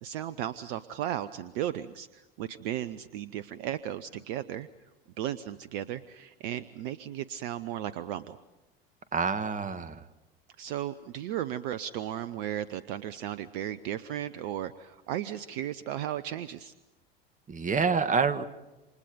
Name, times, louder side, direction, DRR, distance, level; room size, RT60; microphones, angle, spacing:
voice 1, 0.0-4.7 5.2-8.4 10.6-16.7, right 11 dB, 65° right, 14 dB, 1.0 m, -35 dB
voice 2, 9.1-10.0 17.5-18.4, right 5 dB, 25° right, 11 dB, 2.0 m, -27 dB
29.0 x 26.5 x 5.3 m, 1.1 s
hypercardioid pair, 75°, 30 cm